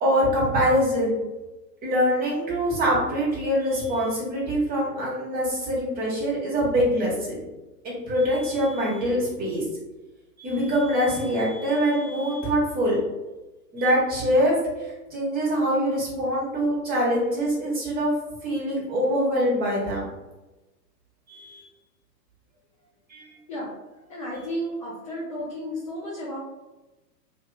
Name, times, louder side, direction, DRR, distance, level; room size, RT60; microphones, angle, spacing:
voice 1, 0.0-1.2 1.8-7.4 7.8-9.6 10.4-13.0 13.7-18.1 18.4-20.1 21.3-21.6 23.1-23.3, equal, 20° right, -5 dB, 1.1 m, -24 dB
voice 2, 24.1-26.4, equal, 20° left, -6 dB, 0.4 m, -33 dB
2.9 x 2.4 x 3.2 m, 1.1 s
hypercardioid pair, 120°, 49 cm